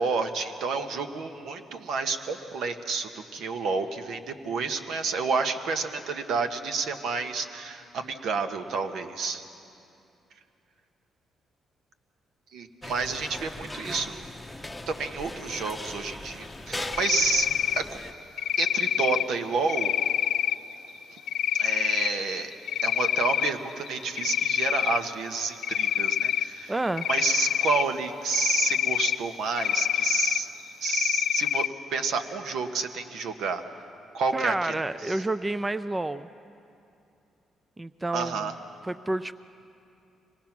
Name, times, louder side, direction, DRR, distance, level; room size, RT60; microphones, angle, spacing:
voice 1, 0.0-9.4 12.5-14.2 14.9-17.5 17.8-18.0 18.6-19.9 21.6-22.5 22.8-26.7 27.1-30.5 30.8-31.6 31.9-33.6 34.1-35.2 38.1-38.5, right 4 dB, 75° right, 7 dB, 1.2 m, -30 dB
sound 1, 12.8-18.1, left 1 dB, 10° left, 0.8 m, -39 dB
Cricket, 16.9-17.8 18.4-19.2 19.7-20.5 21.3-22.1 22.5-23.5 23.9-25.0 25.6-26.4 27.0-27.8 28.3-29.2 29.6-30.4 30.8-31.7, left 10 dB, 75° left, 0.4 m, -26 dB
voice 2, 26.7-27.1 34.3-36.3 37.8-38.5 38.9-39.3, right 2 dB, 15° right, 13 dB, 0.4 m, -29 dB
25.0 x 19.0 x 6.0 m, 2.7 s
cardioid pair, 90°, 0 cm